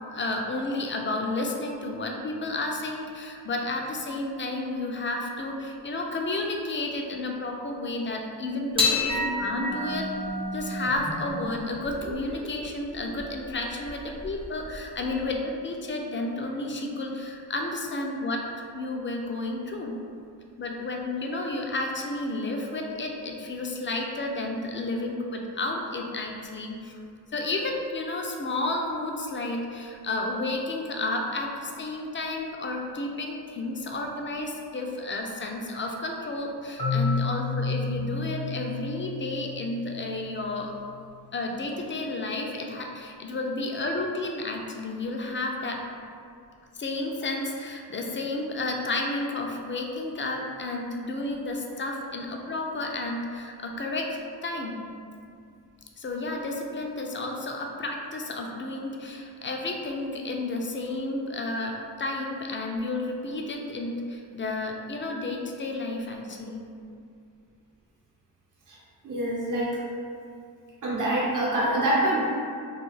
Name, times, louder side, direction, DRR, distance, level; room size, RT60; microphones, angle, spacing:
voice 1, 0.1-10.1 10.5-19.9 20.6-26.9 27.3-40.7 41.3-45.8 46.8-54.8 56.0-66.6, left 2 dB, 30° left, 1 dB, 0.4 m, -31 dB
sound 1, 8.7-15.3, left 2 dB, 15° right, 0.6 m, -31 dB
Marimba xylophone, 36.8-40.7, left 3 dB, 75° left, 0.9 m, -31 dB
voice 2, 69.0-69.8 70.8-72.3, right 1 dB, 50° right, -6 dB, 0.8 m, -25 dB
2.4 x 2.3 x 3.1 m, 2.3 s
cardioid pair, 45°, 40 cm